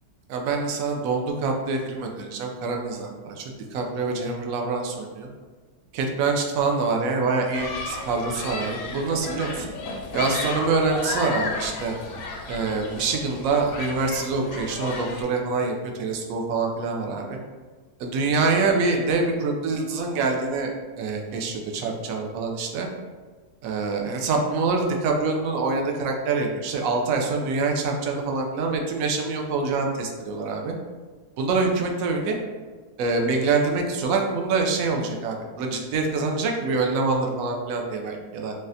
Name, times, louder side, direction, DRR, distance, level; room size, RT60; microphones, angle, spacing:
voice 1, 0.3-5.3 5.9-9.7 10.1-12.0 12.5-17.4 18.0-22.9 23.6-30.7 31.4-32.4 33.0-38.5, right 4 dB, 70° right, 2 dB, 0.9 m, -25 dB
Human group actions, 7.5-15.2, left 3 dB, 70° left, 0.8 m, -33 dB
4.0 x 2.4 x 2.6 m, 1.4 s
omnidirectional pair, 1.7 m